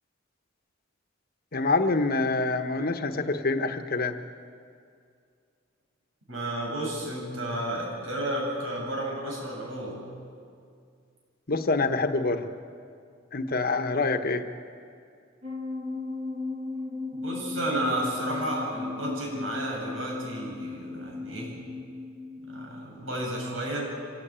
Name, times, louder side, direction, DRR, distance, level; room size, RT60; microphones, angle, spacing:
voice 1, 1.5-4.2 11.5-12.5 13.3-14.5, left 3 dB, 50° left, 8 dB, 1.2 m, -26 dB
voice 2, 6.3-10.1 17.1-21.6 22.5-24.0, right 1 dB, 90° right, -1 dB, 7.4 m, -32 dB
sound 1, 15.4-22.8, left 3 dB, 30° right, 1.9 m, -36 dB
25.5 x 17.0 x 8.9 m, 2.3 s
head